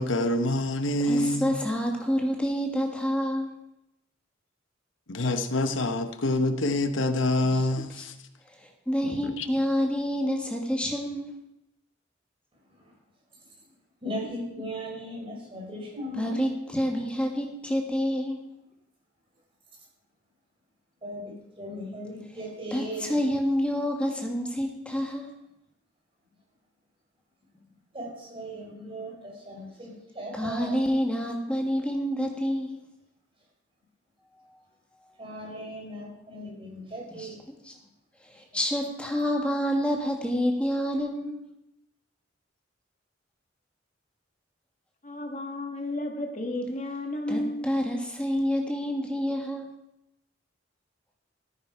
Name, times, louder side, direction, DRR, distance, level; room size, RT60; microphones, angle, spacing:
voice 1, 0.0-1.6 5.1-8.1 9.0-9.5, left 1 dB, 85° left, 8 dB, 1.0 m, -26 dB
voice 2, 1.0-3.5 7.4-7.6 8.0-8.1 8.9-11.3 16.2-18.5 22.7-25.3 30.3-32.8 37.2-37.3 37.7-37.8 38.3-41.4 47.3-49.7, equal, 5° left, 1 dB, 1.8 m, -28 dB
voice 3, 14.0-16.5 21.0-23.2 27.9-30.8 35.2-37.4, equal, 30° right, -1 dB, 4.2 m, -37 dB
voice 4, 45.0-47.7, left 1 dB, 40° left, 3 dB, 1.4 m, -32 dB
14.0 x 9.8 x 4.8 m, 0.84 s
head